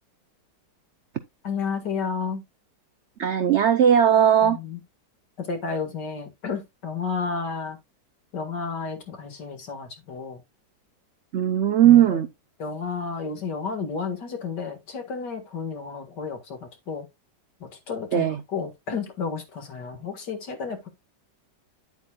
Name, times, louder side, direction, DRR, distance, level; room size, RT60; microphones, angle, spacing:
voice 1, 1.4-2.4 4.4-4.8 5.4-7.8 8.3-10.4 11.8-12.2 12.6-17.1 17.6-20.9, left 5 dB, 70° left, 2.4 m, -32 dB
voice 2, 3.2-4.6 11.3-12.3 18.1-18.4, right 9 dB, 80° right, 0.6 m, -18 dB
9.5 x 8.1 x 2.3 m
omnidirectional pair, 1.9 m